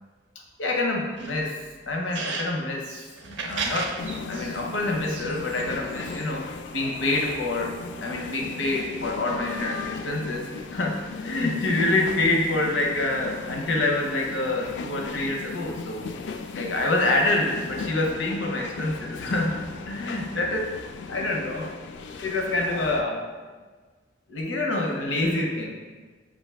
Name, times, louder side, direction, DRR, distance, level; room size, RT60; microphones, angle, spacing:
voice 1, 0.6-1.6 1.9-2.9 3.2-4.0 4.3-16.1 16.6-19.6 19.9-20.7 21.1-21.7 22.2-23.2 24.3-25.7, left 2 dB, 85° left, 1 dB, 0.7 m, -26 dB
sound 1, 1.1-2.5 2.8-4.6 5.0-6.4, right 4 dB, 80° right, 0.5 m, -34 dB
sound 2, 4.0-23.0, left 4 dB, 65° left, 0.3 m, -37 dB
5.4 x 2.6 x 3.4 m, 1.4 s
head